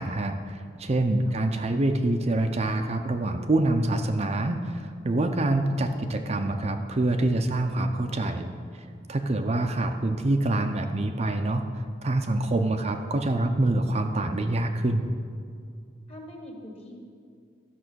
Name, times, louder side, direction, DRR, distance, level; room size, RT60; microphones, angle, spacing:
voice 1, 0.0-8.5 9.1-11.6 12.0-15.1, right 2 dB, 35° right, 5 dB, 0.6 m, -26 dB
voice 2, 5.5-6.2 12.8-12.9 16.1-17.0, left 1 dB, 35° left, 0 dB, 1.8 m, -45 dB
12.5 x 6.1 x 6.2 m, 2.2 s
head